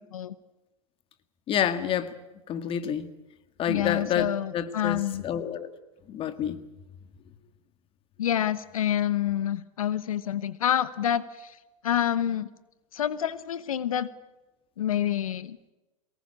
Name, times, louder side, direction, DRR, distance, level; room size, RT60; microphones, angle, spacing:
voice 1, 1.5-2.1 2.5-3.1 3.6-4.3 4.5-5.7 6.1-6.6, left 9 dB, 30° left, 12 dB, 2.0 m, -28 dB
voice 2, 3.7-5.2 8.2-11.6 11.8-12.5 12.9-14.1 14.8-15.6, left 10 dB, 85° left, 16 dB, 1.1 m, -27 dB
23.0 x 19.0 x 8.8 m, 1.0 s
hypercardioid pair, 120°, 17 cm